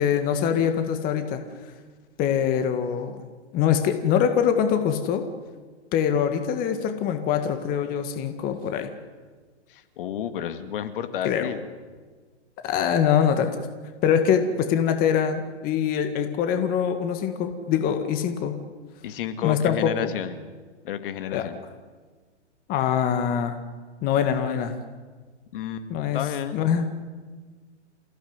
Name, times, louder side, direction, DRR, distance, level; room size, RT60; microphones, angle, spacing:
voice 1, 0.0-1.4 2.2-3.2 3.5-5.2 5.9-8.9 11.2-11.5 12.6-13.7 14.0-18.6 19.4-20.1 21.3-21.5 22.7-23.6 24.0-24.8 25.9-26.2 26.5-26.9, left 8 dB, 25° left, 7 dB, 1.9 m, -23 dB
voice 2, 9.7-11.6 19.0-20.4 20.8-21.6 25.5-25.9 26.1-26.7, left 9 dB, 50° left, 9 dB, 2.2 m, -31 dB
28.5 x 16.5 x 9.6 m, 1.4 s
hypercardioid pair, 145°, 35 cm